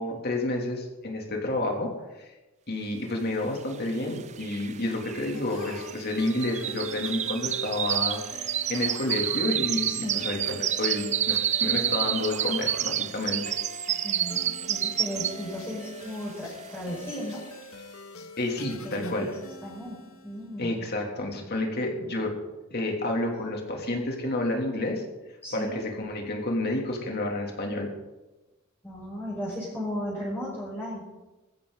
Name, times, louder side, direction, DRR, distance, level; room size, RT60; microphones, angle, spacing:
voice 1, 0.0-1.9 2.7-9.9 10.1-13.5 18.4-19.3 20.6-22.3 22.7-25.0 25.5-27.9, left 1 dB, 45° left, 1 dB, 3.2 m, -30 dB
sound 1, 3.9-4.0 4.2-15.6 16.0-16.3 16.8-16.9, right 10 dB, 30° right, 0.4 m, -29 dB
sound 2, 5.3-20.8, left 3 dB, 75° left, 1.8 m, -45 dB
voice 2, 9.8-10.3 14.0-17.4 18.8-19.3 19.6-20.7 25.4-25.8 28.8-31.1, equal, 10° left, -8 dB, 5.6 m, -35 dB
21.5 x 15.0 x 4.1 m, 1.1 s
head